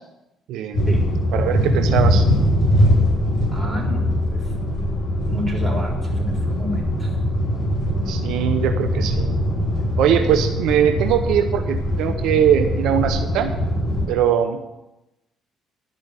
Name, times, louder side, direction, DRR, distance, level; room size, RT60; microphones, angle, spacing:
voice 1, 0.5-0.9 1.3-2.2 8.1-9.3 10.0-13.5 14.1-14.6, right 9 dB, 80° right, 7 dB, 0.8 m, -21 dB
sound 1, 0.7-14.0, equal, 45° left, 5.1 m, -21 dB
voice 2, 3.5-4.4 5.2-7.1, equal, 15° right, -2 dB, 4.2 m, -30 dB
12.0 x 5.2 x 8.1 m, 0.98 s
cardioid pair, 90°, 0 cm